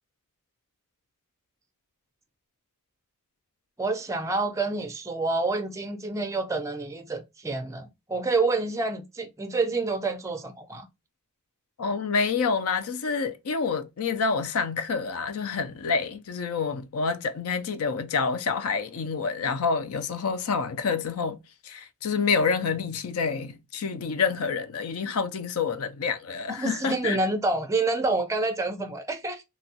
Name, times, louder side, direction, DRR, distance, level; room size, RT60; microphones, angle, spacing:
voice 1, 3.8-10.9 26.5-29.4, right 3 dB, 15° right, 0.4 m, -28 dB
voice 2, 11.8-21.4 21.6-27.2, left 5 dB, 65° left, 0.4 m, -28 dB
2.9 x 2.2 x 2.7 m
head